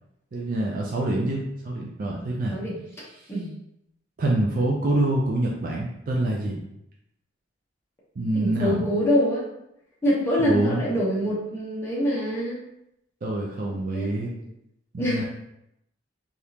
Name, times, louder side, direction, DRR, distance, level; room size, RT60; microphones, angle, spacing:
voice 1, 0.3-2.6 3.2-3.3 4.2-6.6 8.2-8.8 10.4-10.8 13.2-14.3 14.9-15.2, right 1 dB, 50° right, -2 dB, 0.4 m, -26 dB
voice 2, 8.3-9.5 10.0-12.6 13.9-14.4 15.0-15.2, equal, 15° left, -8 dB, 0.8 m, -25 dB
3.4 x 2.4 x 2.8 m, 0.80 s
head